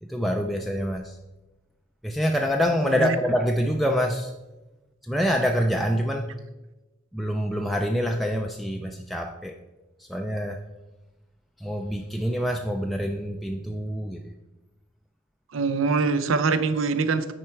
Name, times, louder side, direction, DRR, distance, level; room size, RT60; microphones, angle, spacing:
voice 1, 0.0-1.2 2.0-4.3 5.0-6.3 7.1-9.6 10.0-10.6 11.6-14.4, equal, ahead, 2 dB, 0.3 m, -26 dB
voice 2, 2.9-3.2 15.5-17.3, right 4 dB, 70° right, 11 dB, 0.6 m, -24 dB
9.3 x 4.4 x 4.5 m, 1.1 s
head